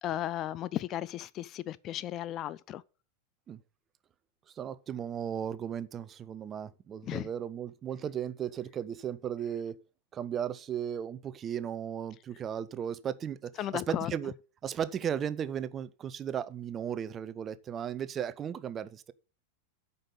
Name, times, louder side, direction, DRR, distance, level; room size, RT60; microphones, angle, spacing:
voice 1, 0.0-2.8 7.0-7.3 13.6-14.1, left 12 dB, 35° left, 0.4 m, -35 dB
voice 2, 4.6-9.8 10.1-14.3 14.6-19.1, right 8 dB, 25° right, 0.6 m, -36 dB
8.8 x 5.5 x 7.1 m
figure-of-eight pair, 90°, 0 cm